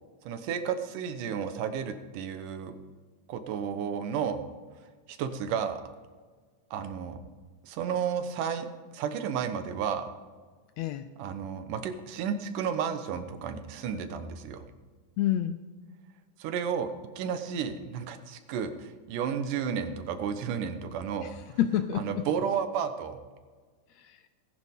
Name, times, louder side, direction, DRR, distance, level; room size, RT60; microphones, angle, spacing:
voice 1, 0.2-2.7 3.3-4.4 5.1-5.8 6.7-7.2 7.6-10.1 11.2-14.6 16.4-21.6 21.9-23.2, right 7 dB, 85° right, 9 dB, 2.5 m, -32 dB
voice 2, 10.8-11.1 15.2-15.6 21.2-22.3 23.9-24.2, left 11 dB, 85° left, 10 dB, 1.5 m, -29 dB
18.5 x 10.5 x 3.6 m, 1.5 s
omnidirectional pair, 3.6 m